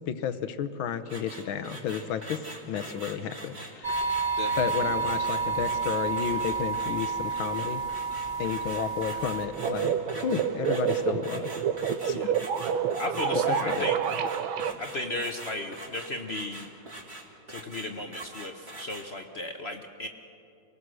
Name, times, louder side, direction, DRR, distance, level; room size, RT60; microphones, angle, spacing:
voice 1, 0.1-4.1 4.6-7.8 8.4-11.5 12.0-12.3 13.5-13.9, left 8 dB, 85° left, 11 dB, 1.7 m, -32 dB
sound 1, 1.0-19.1, right 1 dB, 30° right, 2.9 m, -43 dB
sound 2, 3.8-9.5, right 4 dB, 15° right, 1.3 m, -30 dB
sound 3, 9.5-14.7, right 8 dB, 90° right, 1.6 m, -28 dB
voice 2, 13.0-14.0 14.8-16.7 17.5-20.1, left 2 dB, 50° left, 4 dB, 0.8 m, -35 dB
28.5 x 19.5 x 6.3 m, 2.7 s
omnidirectional pair, 2.2 m